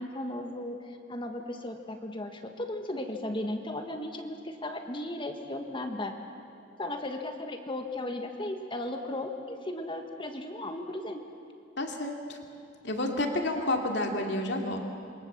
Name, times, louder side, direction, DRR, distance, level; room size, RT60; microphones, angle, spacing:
voice 1, 0.0-6.1 6.8-11.2, left 1 dB, 25° left, 4 dB, 1.5 m, -36 dB
voice 2, 11.8-12.4 12.8-14.8, left 1 dB, 55° left, 2 dB, 2.8 m, -30 dB
27.5 x 23.5 x 7.4 m, 2.5 s
head